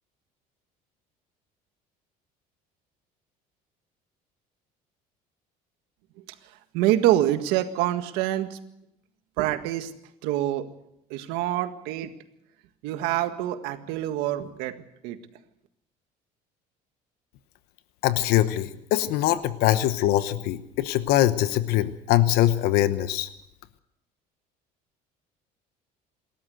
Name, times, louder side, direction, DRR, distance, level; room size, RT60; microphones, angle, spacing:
voice 1, 6.7-8.6 9.4-9.9 10.2-10.7 11.1-12.1 12.8-14.7 15.0-15.2, right 13 dB, 90° right, 8 dB, 1.8 m, -25 dB
voice 2, 18.0-23.3, left 13 dB, 80° left, 13 dB, 1.1 m, -23 dB
27.0 x 13.5 x 7.9 m, 0.82 s
cardioid pair, 130°, 16 cm